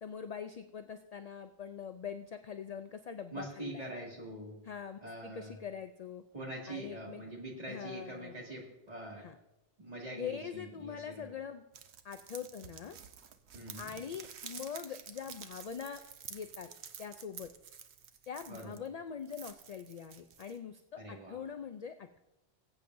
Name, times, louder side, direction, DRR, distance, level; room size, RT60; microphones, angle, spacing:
voice 1, 0.0-3.9 4.6-6.2 6.7-7.2 7.7-8.4 9.2-9.4 10.2-11.6 12.0-13.0 13.8-16.0 16.3-16.7 17.0-17.5 18.3-22.2, left 7 dB, 55° left, 9 dB, 0.4 m, -43 dB
voice 2, 3.3-4.6 5.0-5.6 6.3-9.3 9.8-11.3 13.5-13.9 18.5-18.8 21.0-21.4, right 1 dB, 40° right, -3 dB, 2.4 m, -44 dB
sound 1, 11.7-18.9 19.2-20.6, right 7 dB, 85° right, 1.0 m, -50 dB
20.0 x 8.5 x 2.6 m, 0.91 s
omnidirectional pair, 1.1 m